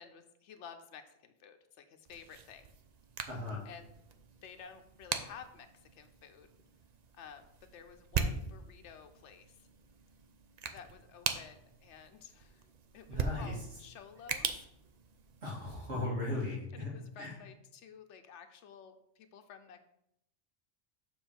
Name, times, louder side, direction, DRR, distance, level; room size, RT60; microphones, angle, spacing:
voice 1, 0.0-2.7 3.7-3.9 4.4-6.5 7.1-7.5 7.7-9.7 10.7-12.7 12.9-14.7 16.4-19.8, left 7 dB, 90° left, 7 dB, 1.0 m, -52 dB
sound 1, 2.1-15.7, right 5 dB, 50° right, 0.5 m, -41 dB
voice 2, 3.3-3.7 13.1-13.6 15.4-17.4, left 2 dB, 75° right, -3 dB, 2.1 m, -37 dB
7.0 x 3.6 x 6.2 m, 0.79 s
omnidirectional pair, 1.2 m